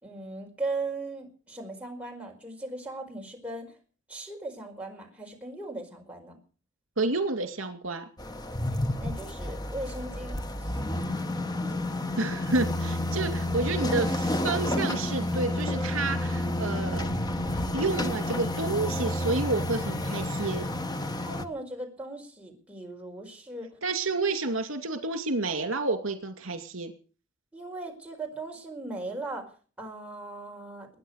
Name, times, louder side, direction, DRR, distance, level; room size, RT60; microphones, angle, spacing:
voice 1, 0.0-3.7 4.1-6.4 9.0-10.8 11.6-11.8 21.3-23.7 27.5-29.5 29.8-30.9, right 2 dB, 5° right, 0 dB, 4.8 m, -38 dB
voice 2, 7.0-8.0 12.2-17.1 17.7-20.7 23.8-26.9, right 3 dB, 80° right, 8 dB, 2.5 m, -30 dB
sound 1, 8.2-21.4, left 1 dB, 20° left, 1.1 m, -30 dB
22.0 x 9.9 x 6.5 m, 0.39 s
head